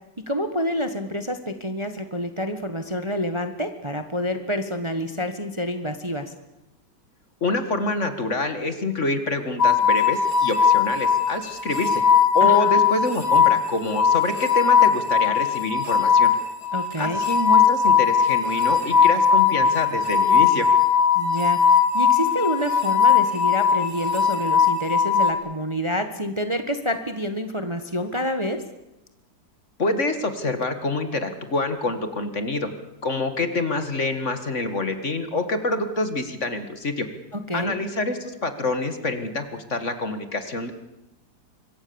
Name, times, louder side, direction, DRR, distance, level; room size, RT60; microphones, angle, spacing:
voice 1, 0.3-6.3 12.4-12.8 16.7-17.2 21.1-21.6 21.9-28.6 37.3-37.8, equal, 20° right, 8 dB, 1.4 m, -28 dB
voice 2, 7.4-12.0 12.3-16.3 17.0-20.7 29.8-32.7 33.0-37.1 37.5-40.7, left 2 dB, 45° left, 9 dB, 2.1 m, -26 dB
sound 1, 9.6-25.3, left 7 dB, 65° left, 3.0 m, -19 dB
25.5 x 23.0 x 7.1 m, 0.92 s
omnidirectional pair, 1.9 m